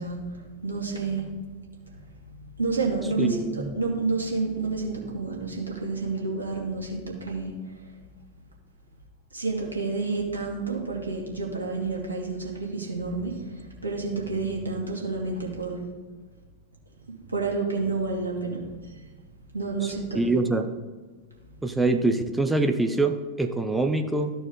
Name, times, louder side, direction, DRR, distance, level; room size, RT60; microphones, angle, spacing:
voice 1, 0.0-1.4 1.9-7.6 9.3-15.8 17.1-19.0 19.5-20.4, right 3 dB, 80° right, -1 dB, 1.9 m, -30 dB
voice 2, 3.2-3.7 20.1-20.7 21.6-24.3, right 2 dB, 5° right, 5 dB, 0.7 m, -24 dB
13.5 x 4.5 x 3.7 m, 1.4 s
figure-of-eight pair, 90°, 0 cm